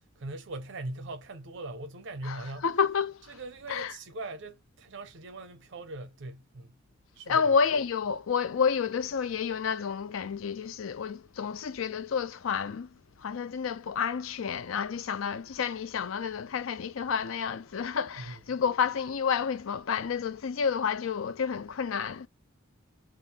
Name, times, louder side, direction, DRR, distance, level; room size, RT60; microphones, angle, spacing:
voice 1, 0.0-2.7 3.3-6.8 7.1-7.6 18.2-18.4, right 2 dB, 65° right, 0.6 m, -41 dB
voice 2, 2.2-3.2 3.7-3.9 7.3-12.9 13.2-22.3, left 6 dB, 85° left, 0.5 m, -30 dB
3.6 x 2.0 x 4.0 m
head